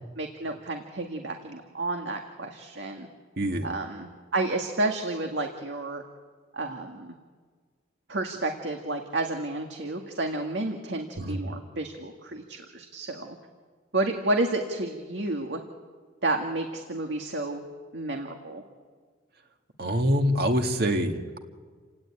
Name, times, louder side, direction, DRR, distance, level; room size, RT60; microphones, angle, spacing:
voice 1, 0.2-3.1 3.6-6.0 6.5-7.1 8.1-13.4 13.9-15.6 16.2-17.6 17.9-18.6, right 2 dB, 75° right, 3 dB, 1.9 m, -31 dB
voice 2, 3.4-3.7 11.2-11.4 19.8-21.4, equal, 55° right, 4 dB, 2.1 m, -25 dB
29.0 x 18.5 x 8.9 m, 1.5 s
head